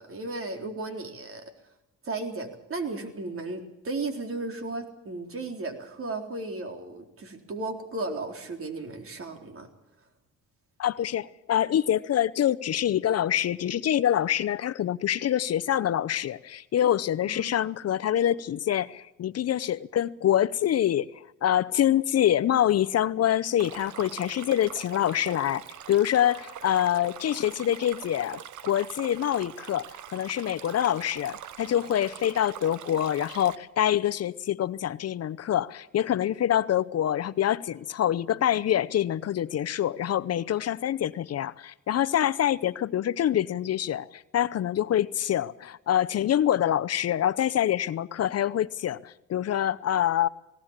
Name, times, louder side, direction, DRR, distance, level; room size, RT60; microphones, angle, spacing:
voice 1, 0.0-1.5 2.0-9.7 17.3-17.5 17.8-17.9, right 3 dB, 45° right, 4.0 m, -35 dB
voice 2, 10.8-25.6 25.9-50.3, left 11 dB, 55° left, 0.7 m, -26 dB
Stream, 23.6-33.6, right 10 dB, 75° right, 1.2 m, -43 dB
19.5 x 18.5 x 7.4 m
cardioid pair, 90°, 30 cm